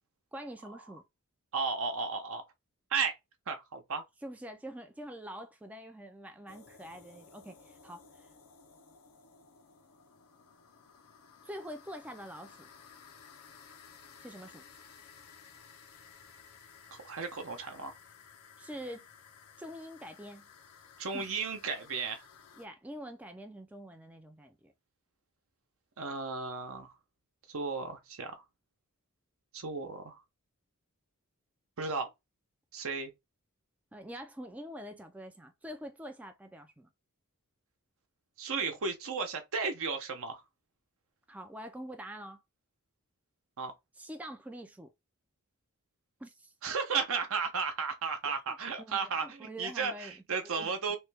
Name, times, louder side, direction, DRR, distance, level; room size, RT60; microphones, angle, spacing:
voice 1, 0.3-1.0 4.2-8.3 11.4-12.7 14.2-14.6 18.6-19.0 19.6-20.5 21.1-21.3 22.6-24.7 33.9-36.9 41.3-42.4 44.0-44.9 46.2-46.5 48.2-48.3 48.8-50.1 50.4-50.7, equal, 5° right, 0.3 m, -45 dB
voice 2, 1.5-2.5 2.9-3.2 3.5-4.0 16.9-18.0 21.0-22.3 26.0-26.9 27.5-28.4 29.5-30.2 31.8-32.1 32.7-33.1 38.4-40.4 43.6-43.7 46.6-51.0, right 5 dB, 65° right, 0.8 m, -34 dB
sound 1, 6.5-22.7, left 6 dB, 85° left, 0.7 m, -56 dB
3.1 x 2.2 x 3.2 m
head